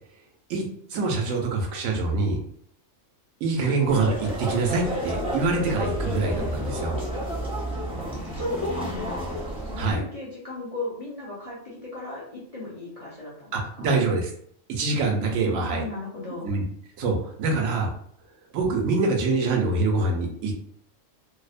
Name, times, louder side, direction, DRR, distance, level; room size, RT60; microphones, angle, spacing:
voice 1, 0.9-2.4 3.4-7.0 9.8-10.0 13.5-14.3 14.7-15.8 16.4-16.6 17.0-17.9 18.5-20.5, right 3 dB, 85° right, 1 dB, 1.0 m, -25 dB
sound 1, 3.9-9.9, right 1 dB, 5° right, 0.4 m, -31 dB
voice 2, 7.9-9.3 9.7-14.0 15.4-16.5, left 2 dB, 50° left, -6 dB, 0.4 m, -35 dB
2.7 x 2.0 x 2.4 m, 0.64 s
omnidirectional pair, 1.3 m